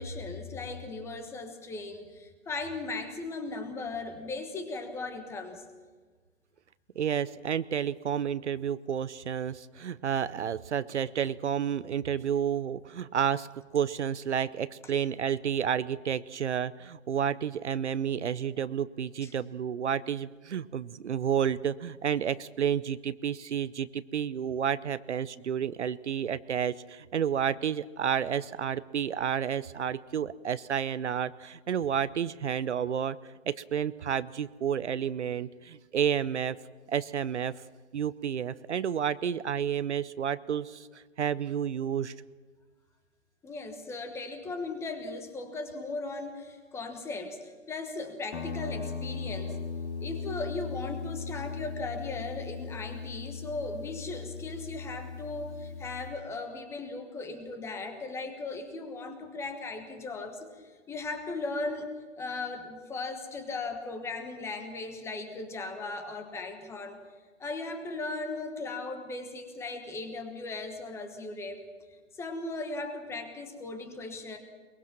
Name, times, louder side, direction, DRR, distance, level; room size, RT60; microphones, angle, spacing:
voice 1, 0.0-5.6 19.2-19.3 43.4-49.6 50.0-61.9 62.2-67.0 67.4-71.6 72.1-74.4, left 3 dB, 5° left, 7 dB, 1.3 m, -37 dB
voice 2, 7.0-13.5 13.7-33.2 33.5-36.6 36.9-37.5 37.9-42.1, right 8 dB, 60° right, 16 dB, 0.8 m, -30 dB
Guitar, 48.3-56.2, left 5 dB, 55° left, 4.3 m, -38 dB
23.0 x 22.0 x 6.0 m, 1.4 s
hypercardioid pair, 150°, 40 cm